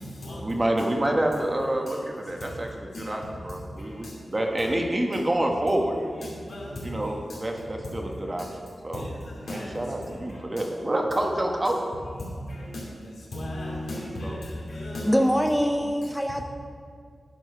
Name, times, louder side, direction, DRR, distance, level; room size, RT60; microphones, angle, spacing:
voice 1, 0.4-6.0 6.8-8.5 8.8-9.1 9.5-11.8 14.2-14.4, right 1 dB, 25° right, 1 dB, 1.1 m, -27 dB
voice 2, 13.3-14.4 14.7-15.1, left 1 dB, 85° left, -5 dB, 2.3 m, -34 dB
voice 3, 15.0-16.4, equal, ahead, 4 dB, 0.5 m, -23 dB
11.0 x 4.5 x 5.4 m, 2.2 s
wide cardioid pair, 90°, 0 cm